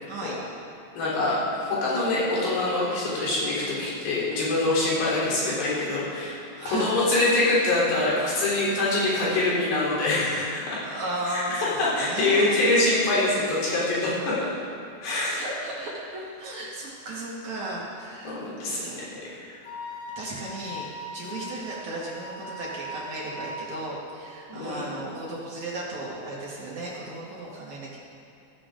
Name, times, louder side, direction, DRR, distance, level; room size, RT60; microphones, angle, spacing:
voice 1, 0.1-0.4 6.5-7.0 7.3-7.4 7.7-7.9 10.9-12.6 15.4-18.4 18.8-19.1 20.2-20.9 21.1-28.0, right 2 dB, 50° right, -5 dB, 2.3 m, -35 dB
voice 2, 1.0-10.8 11.3-14.5 15.0-15.4 18.2-19.6 21.2-21.4 24.5-25.0, left 2 dB, 60° left, -7 dB, 5.6 m, -25 dB
Wind instrument woodwind instrument, 19.6-23.6, left 1 dB, 75° left, 5.0 m, -39 dB
15.5 x 15.5 x 3.8 m, 2.6 s
omnidirectional pair, 5.5 m